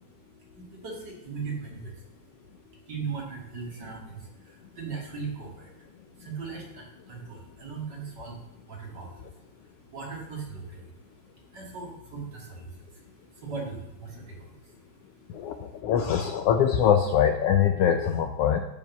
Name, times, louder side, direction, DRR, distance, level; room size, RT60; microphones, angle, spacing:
voice 1, 0.0-2.6 2.9-10.9 11.5-14.8 15.1-15.6, right 5 dB, 40° right, -1 dB, 2.2 m, -39 dB
voice 2, 15.3-18.6, left 8 dB, 90° left, 6 dB, 1.3 m, -23 dB
12.0 x 4.9 x 7.0 m, 0.95 s
omnidirectional pair, 3.5 m